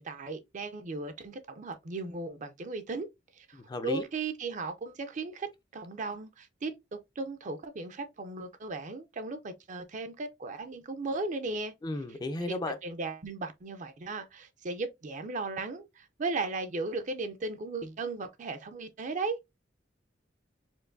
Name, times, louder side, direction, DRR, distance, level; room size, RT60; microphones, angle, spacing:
voice 1, 0.0-3.1 3.4-11.7 12.4-12.6 12.8-19.4, right 3 dB, 40° right, 0.5 m, -36 dB
voice 2, 3.5-4.0 11.8-12.8, left 2 dB, 20° left, 0.4 m, -34 dB
4.5 x 2.6 x 2.5 m
head